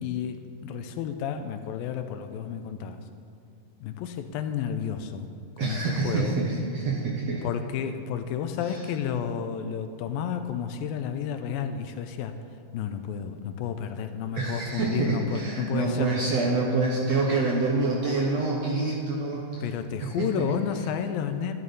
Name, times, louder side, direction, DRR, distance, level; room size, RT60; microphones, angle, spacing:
voice 1, 0.0-3.0 3.8-5.3 5.6-5.8 6.0-6.4 7.4-12.3 12.7-16.2 19.6-21.5, left 8 dB, 80° left, 8 dB, 2.4 m, -31 dB
voice 2, 5.6-7.4 8.6-8.8 14.3-19.7 20.0-20.3, right 3 dB, 65° right, -2 dB, 1.7 m, -27 dB
12.5 x 12.0 x 4.1 m, 2.3 s
omnidirectional pair, 4.2 m